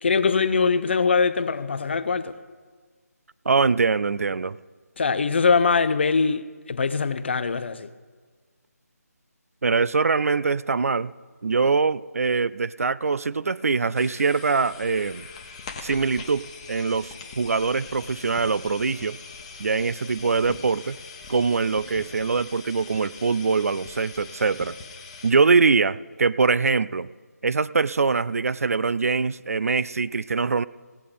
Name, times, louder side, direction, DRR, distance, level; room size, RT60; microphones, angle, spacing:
voice 1, 0.0-2.3 5.0-7.9, left 5 dB, 40° left, 0.5 m, -22 dB
voice 2, 3.5-4.6 9.6-11.1 11.4-15.3 15.8-19.2 19.6-21.0 21.3-24.8 25.2-27.1 27.4-30.6, right 4 dB, 60° right, 0.3 m, -23 dB
sound 1, 14.0-25.3, left 5 dB, 25° left, 1.0 m, -42 dB
17.0 x 7.9 x 5.1 m
figure-of-eight pair, 155°, 9 cm